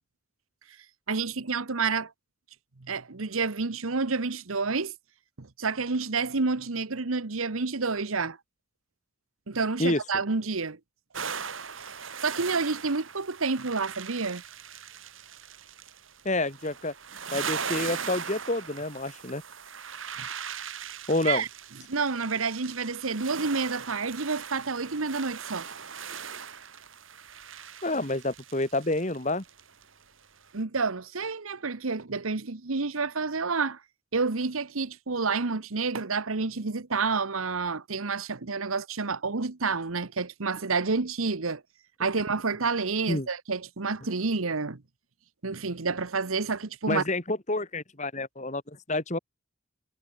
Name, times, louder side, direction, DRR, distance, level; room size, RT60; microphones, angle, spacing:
voice 1, 1.1-2.1 2.8-4.9 5.4-8.4 9.5-10.8 12.2-14.4 21.2-21.5 21.9-25.7 30.5-33.8 34.1-41.6 42.0-44.8 45.4-47.0, right 4 dB, 90° right, 1.2 m, -29 dB
sound 1, 11.1-30.0 30.4-30.6, right 7 dB, 75° right, 4.4 m, -39 dB
voice 2, 16.2-16.9 17.3-19.4 21.1-21.4 27.8-29.4 43.1-43.3 46.9-49.2, left 2 dB, 35° left, 2.6 m, -28 dB
head